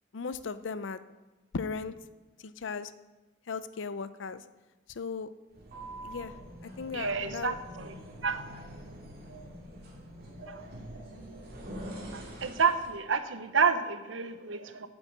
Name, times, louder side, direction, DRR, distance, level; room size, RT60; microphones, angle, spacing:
voice 1, 0.1-1.0 1.5-2.0 2.4-2.9 3.5-4.4 4.9-5.3 6.0-6.3 6.6-7.6, left 5 dB, 75° left, 13 dB, 0.5 m, -37 dB
sound 1, 5.5-13.0, right 1 dB, 55° right, 2.2 m, -45 dB
voice 2, 6.9-7.9 8.2-8.6 10.5-10.6 12.1-14.9, right 5 dB, 80° right, 11 dB, 0.8 m, -29 dB
8.1 x 7.8 x 7.3 m, 1.2 s
head